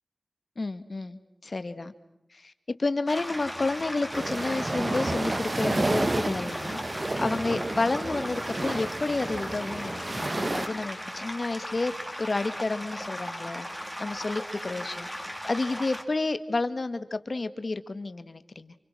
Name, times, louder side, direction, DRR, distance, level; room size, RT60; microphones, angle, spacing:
voice 1, 0.6-1.9 2.3-2.5 2.8-6.8 7.2-13.7 14.0-15.1 15.5-18.7, left 3 dB, 55° left, 11 dB, 1.9 m, -30 dB
sound 1, 3.1-16.0, equal, ahead, 4.6 m, -37 dB
sound 2, 4.1-10.7, right 2 dB, 45° right, 1.8 m, -30 dB
29.5 x 28.5 x 6.2 m, 0.85 s
cardioid pair, 45°, 0 cm